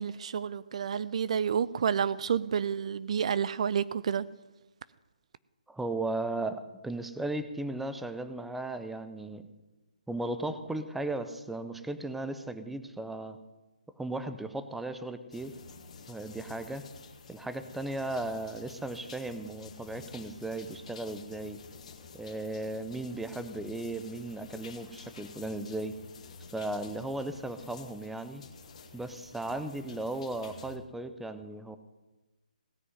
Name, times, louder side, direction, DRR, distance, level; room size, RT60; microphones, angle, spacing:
voice 1, 0.0-4.3, right 7 dB, 50° right, 0.4 m, -29 dB
voice 2, 5.7-9.4 10.1-13.4 14.0-15.5 16.1-16.8 17.3-21.6 22.1-26.0 26.5-28.4 28.9-31.8, right 2 dB, 5° right, 0.6 m, -36 dB
sound 1, 15.3-30.8, left 4 dB, 50° left, 1.9 m, -50 dB
17.0 x 6.1 x 9.2 m
hypercardioid pair, 155°, 4 cm